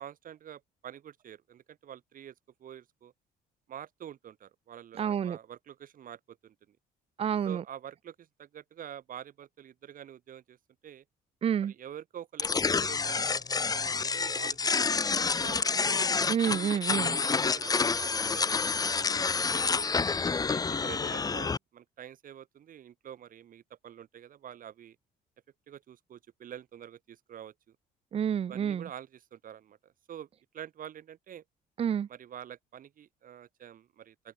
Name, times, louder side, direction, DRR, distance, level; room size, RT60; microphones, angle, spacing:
voice 1, 0.0-2.3 2.6-3.1 3.7-6.8 7.4-10.6 10.8-11.0 11.6-15.8 16.7-19.0 19.3-20.0 20.5-25.0 25.7-27.8 28.5-30.3 30.5-31.4 32.1-34.3, right 10 dB, 55° right, 7.4 m, -47 dB
voice 2, 5.0-5.4 7.2-7.6 11.4-11.7 16.3-17.2 28.1-28.9 31.8-32.1, right 8 dB, 35° right, 0.6 m, -29 dB
sound 1, 12.4-21.6, left 4 dB, 20° left, 0.9 m, -28 dB
open air
cardioid pair, 110°, 17 cm